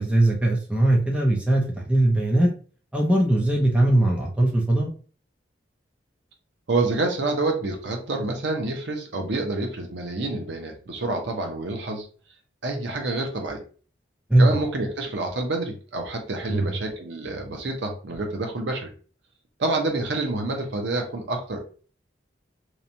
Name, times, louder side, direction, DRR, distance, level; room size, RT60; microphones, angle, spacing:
voice 1, 0.0-2.5 2.9-4.9 14.3-14.6 16.5-16.7, right 1 dB, 5° right, -2 dB, 0.6 m, -20 dB
voice 2, 6.7-12.1 12.6-13.6 14.4-18.9 19.6-21.6, right 2 dB, 70° right, 3 dB, 0.6 m, -28 dB
2.9 x 2.2 x 2.6 m, 0.39 s
head